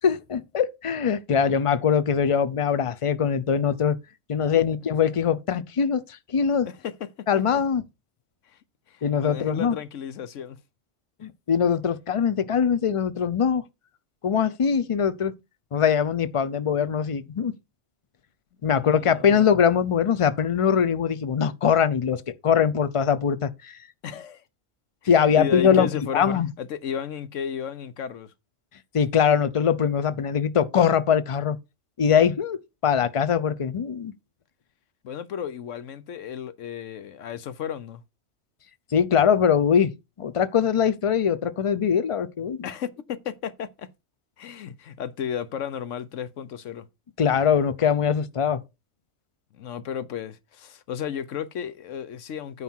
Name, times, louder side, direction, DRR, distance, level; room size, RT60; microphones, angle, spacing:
voice 1, 0.0-4.0 4.3-6.7 7.3-7.8 9.0-9.8 11.2-13.6 14.2-15.3 15.7-17.5 18.6-23.8 25.1-26.5 28.9-31.6 32.0-32.6 32.8-34.1 38.9-39.9 40.2-42.6 47.2-48.6, left 7 dB, 40° left, 0.5 m, -22 dB
voice 2, 8.9-10.6 18.6-19.4 24.0-24.4 25.0-26.3 26.6-28.3 35.0-38.0 42.6-43.9 44.4-46.9 49.5-52.6, left 8 dB, 85° left, 1.1 m, -34 dB
9.4 x 5.7 x 4.5 m
omnidirectional pair, 1.2 m